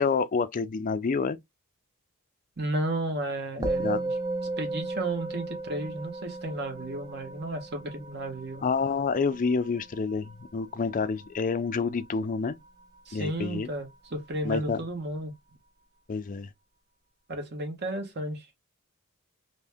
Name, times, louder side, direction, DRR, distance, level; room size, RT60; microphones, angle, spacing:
voice 1, 0.0-1.4 3.6-4.0 8.6-12.5 13.1-13.7 14.4-14.8 16.1-16.5, left 5 dB, 35° left, 0.4 m, -28 dB
voice 2, 2.6-4.1 4.6-8.6 13.1-15.3 17.3-18.5, right 1 dB, 50° right, 1.2 m, -33 dB
Musical instrument, 3.6-13.1, right 2 dB, 15° right, 0.5 m, -36 dB
2.8 x 2.7 x 3.4 m
head